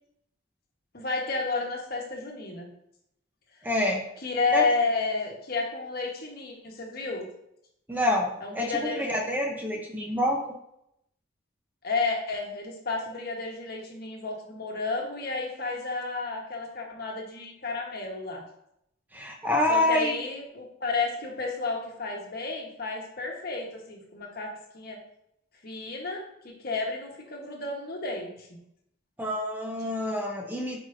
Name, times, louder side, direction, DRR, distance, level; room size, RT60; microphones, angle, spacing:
voice 1, 0.9-2.7 4.2-7.3 8.4-9.2 11.8-18.4 19.7-24.5 24.7-25.0 25.6-28.6, left 3 dB, 55° left, 1 dB, 1.2 m, -31 dB
voice 2, 3.6-4.0 4.5-4.6 7.9-10.4 19.1-20.1 29.2-30.8, left 1 dB, 10° right, 1 dB, 0.7 m, -27 dB
8.5 x 4.8 x 2.6 m, 0.78 s
head